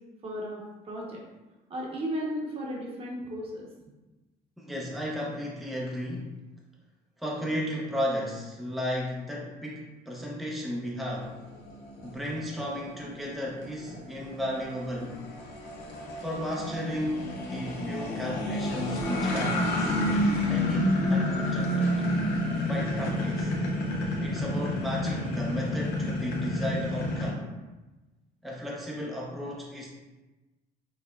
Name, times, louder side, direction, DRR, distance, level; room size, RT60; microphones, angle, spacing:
voice 1, 0.2-1.2 1.7-3.7, equal, 35° right, -3 dB, 0.9 m, -35 dB
voice 2, 4.6-6.3 7.2-11.4 12.0-15.2 16.2-20.0 20.5-22.0 22.7-23.5 24.2-27.5 28.4-29.9, left 1 dB, ahead, -3 dB, 0.5 m, -34 dB
sound 1, 11.2-27.3, left 1 dB, 80° left, 0.7 m, -29 dB
5.4 x 2.1 x 2.3 m, 1.1 s
cardioid pair, 110°, 17 cm